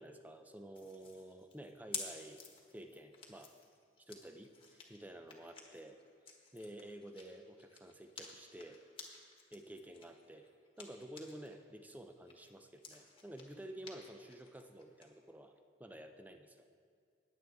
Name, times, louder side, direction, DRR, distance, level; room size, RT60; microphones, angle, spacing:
voice 1, 0.0-2.4 2.7-3.5 4.1-6.0 6.3-8.8 9.5-10.5 10.8-15.5 15.8-16.6, right 1 dB, 10° right, 6 dB, 0.5 m, -51 dB
sound 1, 0.7-11.5 11.9-15.1, left 5 dB, 25° left, 1.3 m, -52 dB
19.0 x 7.8 x 3.5 m, 2.2 s
head